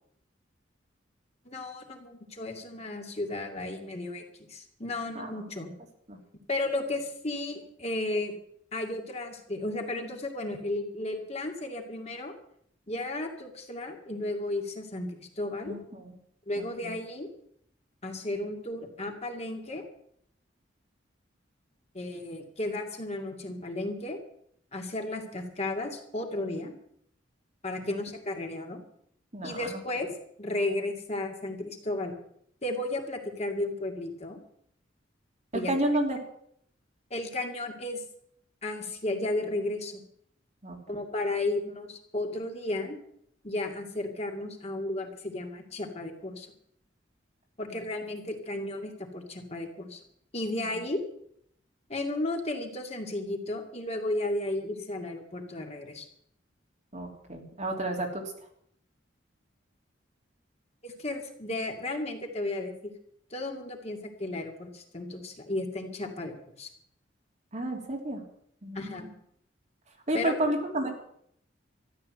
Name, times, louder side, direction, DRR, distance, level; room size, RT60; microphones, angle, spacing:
voice 1, 1.4-5.7 6.5-8.3 8.7-12.3 12.9-15.7 16.5-17.3 18.0-19.9 21.9-24.2 24.7-26.7 27.6-28.8 29.4-30.1 30.4-32.1 32.6-34.4 35.5-35.7 37.1-38.0 38.6-40.0 40.9-43.0 43.4-46.5 47.6-50.0 50.3-51.0 51.9-56.1 60.8-62.7 63.3-66.7 68.7-69.1 70.1-70.4, left 2 dB, 35° left, 2 dB, 2.3 m, -34 dB
voice 2, 15.7-16.1 16.6-16.9 27.8-27.9 29.3-29.8 35.7-36.2 40.6-40.8 50.6-50.8 56.9-58.2 67.5-68.2 68.6-69.1 70.1-70.9, right 1 dB, 40° right, 1 dB, 3.3 m, -31 dB
14.0 x 11.5 x 7.7 m, 0.68 s
head